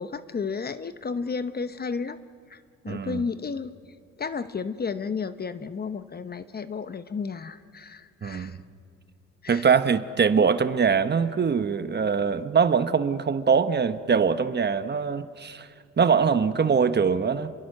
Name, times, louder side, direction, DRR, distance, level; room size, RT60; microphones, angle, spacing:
voice 1, 0.0-2.2 2.5-3.7 4.2-8.6 9.4-9.7, left 5 dB, 30° left, 12 dB, 0.9 m, -32 dB
voice 2, 2.9-3.2 8.2-8.6 9.5-15.7 16.0-17.5, right 6 dB, 35° right, 11 dB, 1.1 m, -23 dB
28.0 x 22.5 x 6.6 m, 2.2 s
cardioid pair, 90°, 30 cm